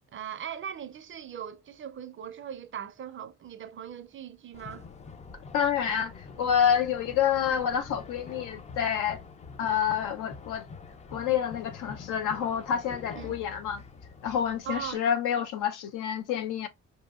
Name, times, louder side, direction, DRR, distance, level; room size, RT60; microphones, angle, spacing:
voice 1, 0.1-4.8 13.1-13.4 14.6-15.0, right 9 dB, 40° right, 0.5 m, -39 dB
sound 1, 4.5-14.9, left 5 dB, 25° left, 0.4 m, -46 dB
voice 2, 5.5-9.2 9.6-10.6 11.1-13.8 14.2-16.7, left 8 dB, 85° left, 0.7 m, -28 dB
4.4 x 2.7 x 2.3 m
cardioid pair, 90°, 30 cm